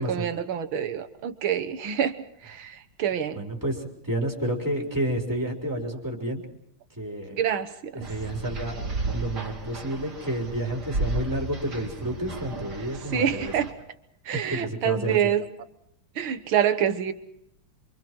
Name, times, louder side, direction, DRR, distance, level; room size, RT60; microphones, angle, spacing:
voice 1, 0.0-2.1 2.4-3.5 7.3-7.9 13.1-13.7 14.3-15.4 16.2-17.1, right 9 dB, 70° right, 10 dB, 2.0 m, -26 dB
voice 2, 3.3-6.4 7.0-7.4 7.9-8.8 9.1-13.5 14.5-15.3, right 1 dB, 10° right, -1 dB, 3.9 m, -30 dB
sound 1, 8.0-13.7, right 2 dB, 50° right, 3.7 m, -34 dB
28.0 x 24.5 x 4.6 m, 0.76 s
omnidirectional pair, 2.3 m